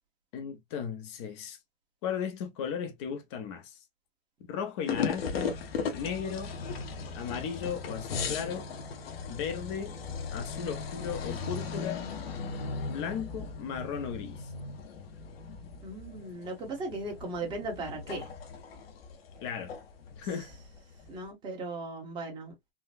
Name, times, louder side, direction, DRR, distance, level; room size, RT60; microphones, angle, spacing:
voice 1, 0.3-1.6 2.0-3.8 4.4-5.5 5.9-6.5 7.1-8.7 9.3-10.0 10.3-12.0 12.9-14.5 19.4-19.7 20.1-20.5, left 7 dB, 30° left, 0.6 m, -36 dB
sound 1, 4.9-21.3, left 5 dB, 85° left, 1.0 m, -37 dB
voice 2, 15.8-18.3 21.1-22.5, right 2 dB, 15° right, 1.1 m, -37 dB
3.8 x 2.1 x 2.5 m
supercardioid pair, 170°, 29 cm